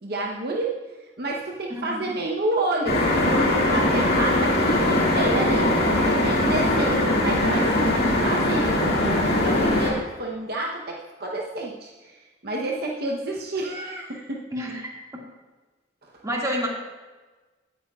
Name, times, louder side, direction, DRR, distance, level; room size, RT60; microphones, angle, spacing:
voice 1, 0.0-0.7 1.2-8.7 9.3-14.5 16.0-16.1, right 2 dB, 60° right, -1 dB, 0.9 m, -29 dB
voice 2, 1.8-2.1 14.5-14.9 16.2-16.7, equal, 20° right, -3 dB, 2.0 m, -28 dB
sound 1, 2.9-9.9, left 1 dB, 55° left, 2.2 m, -21 dB
17.0 x 8.8 x 2.4 m, 1.3 s
head